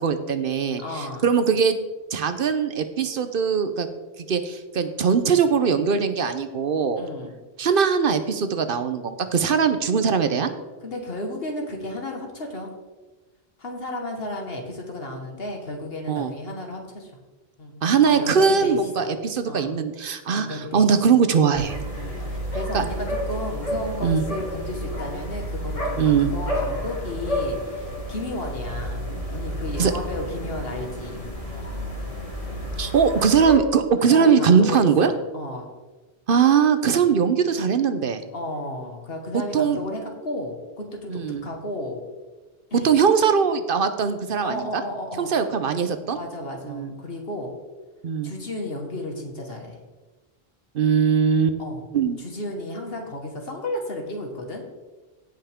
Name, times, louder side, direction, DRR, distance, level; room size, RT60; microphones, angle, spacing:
voice 1, 0.0-1.8 2.1-3.9 4.3-7.0 7.6-10.5 16.1-16.3 17.8-21.8 22.7-22.8 24.0-24.2 26.0-26.3 29.8-29.9 32.8-35.1 36.3-38.2 39.3-39.8 41.1-41.4 42.8-44.8 45.2-46.2 46.6-46.9 48.0-48.3 50.7-51.6 51.9-52.2, right 6 dB, 65° right, 9 dB, 0.9 m, -21 dB
voice 2, 0.8-1.2 7.0-7.3 10.8-12.8 13.6-17.2 17.6-17.8 18.0-19.1 19.5-19.8 20.3-20.9 21.9-26.0 26.3-31.2 34.0-35.7 38.3-42.0 42.7-42.9 44.4-45.3 46.1-47.6 48.2-49.8 51.6-51.8 52.2-54.6, left 1 dB, 70° left, 2 dB, 1.9 m, -33 dB
sound 1, 21.5-33.6, equal, 35° left, 2.5 m, -30 dB
16.5 x 5.7 x 3.6 m, 1.2 s
omnidirectional pair, 1.0 m